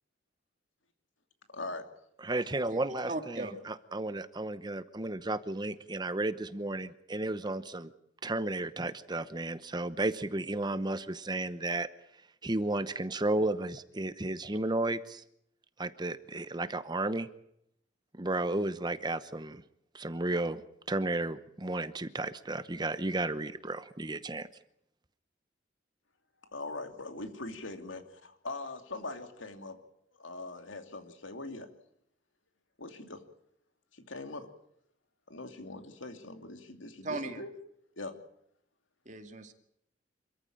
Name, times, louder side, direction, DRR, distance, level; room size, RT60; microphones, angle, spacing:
voice 1, 1.5-1.9 26.4-29.8 30.2-31.7 32.8-33.2 33.9-34.5 35.3-37.5 38.0-38.2, left 2 dB, 90° left, 7 dB, 2.9 m, -42 dB
voice 2, 2.2-7.9 8.2-11.9 12.4-15.2 15.8-17.3 18.1-19.6 19.9-20.6 20.9-24.5, right 2 dB, 20° right, 13 dB, 0.9 m, -33 dB
voice 3, 3.1-3.7 37.0-37.4 39.1-39.5, right 2 dB, 40° right, 7 dB, 2.3 m, -38 dB
27.0 x 14.5 x 8.8 m, 0.76 s
head